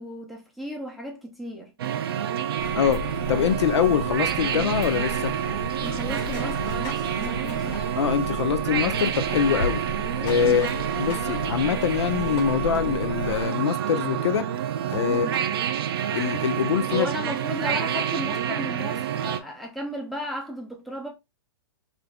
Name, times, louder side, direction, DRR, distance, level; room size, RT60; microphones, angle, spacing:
voice 1, 0.0-1.7 5.8-7.8 10.4-10.7 15.1-15.3 16.9-21.1, equal, ahead, 0.6 m, -34 dB
sound 1, 1.8-19.4, right 9 dB, 60° right, 0.5 m, -28 dB
sound 2, 2.6-13.5, left 2 dB, 60° left, 2.1 m, -35 dB
voice 2, 2.8-5.3 8.0-9.8 10.2-10.7 11.0-14.5 14.9-15.3 16.1-17.1, left 8 dB, 80° left, 0.5 m, -24 dB
sound 3, 4.8-8.5 8.8-12.5 13.2-13.3 13.7-13.8 14.1-18.4, left 2 dB, 35° left, 2.0 m, -45 dB
5.1 x 2.5 x 2.2 m
hypercardioid pair, 160°, 14 cm